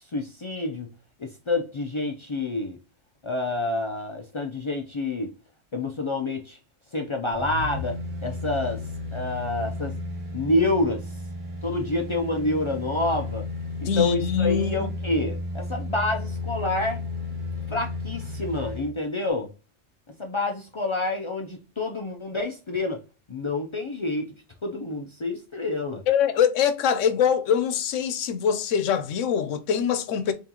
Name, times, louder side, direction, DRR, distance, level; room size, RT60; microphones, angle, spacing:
voice 1, 0.1-0.9 1.2-2.8 3.2-5.3 5.7-6.6 6.9-8.8 9.1-10.0 10.3-11.0 11.6-13.5 13.8-17.0 17.7-19.5 20.2-23.0 23.3-24.3 24.6-26.0, left 2 dB, 50° left, 0.3 m, -28 dB
sound 1, 7.3-18.9 19.3-19.4, left 2 dB, 85° right, 1.9 m, -33 dB
voice 2, 13.9-14.9 26.1-30.3, left 7 dB, 85° left, 1.0 m, -23 dB
3.9 x 3.5 x 2.8 m
omnidirectional pair, 1.3 m